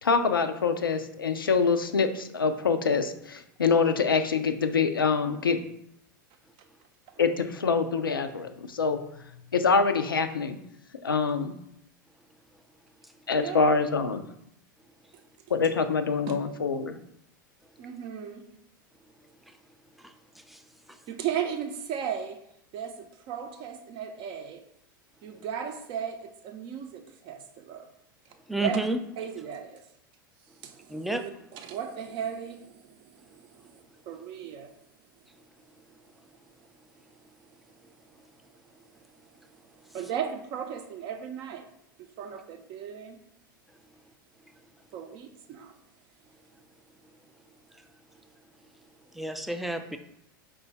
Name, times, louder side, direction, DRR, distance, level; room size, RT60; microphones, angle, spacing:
voice 1, 0.0-5.6 7.2-9.2 9.5-10.6 11.0-11.5 13.3-14.2 15.5-17.0, left 5 dB, 90° left, 0.4 m, -25 dB
voice 2, 17.8-18.5 21.1-22.4 22.7-24.7 25.2-27.9 28.6-28.8 29.2-29.8 30.6-34.7 39.9-41.7 42.2-43.2 44.9-45.7, right 8 dB, 45° right, 0.6 m, -36 dB
voice 3, 28.5-29.0 30.9-31.2 49.1-50.0, right 2 dB, ahead, 0.4 m, -30 dB
4.8 x 2.3 x 4.0 m
hypercardioid pair, 90°, 11 cm